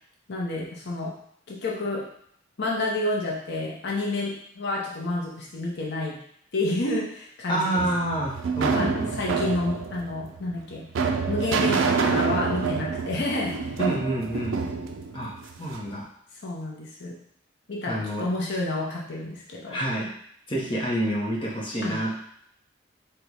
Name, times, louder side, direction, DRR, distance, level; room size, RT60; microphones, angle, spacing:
voice 1, 0.3-1.1 1.5-2.1 2.6-6.2 6.5-7.9 8.7-10.9 11.3-13.6 16.4-17.2 17.7-19.8 21.8-22.0, left 2 dB, 55° left, -3 dB, 0.7 m, -29 dB
voice 2, 7.5-9.2 13.8-14.6 15.1-15.3 15.6-16.0 17.9-18.2 19.7-20.1 20.5-22.2, right 1 dB, 25° left, -4 dB, 0.8 m, -28 dB
sound 1, 7.8-15.9, right 5 dB, 70° right, 0.4 m, -27 dB
3.9 x 2.3 x 4.6 m, 0.69 s
head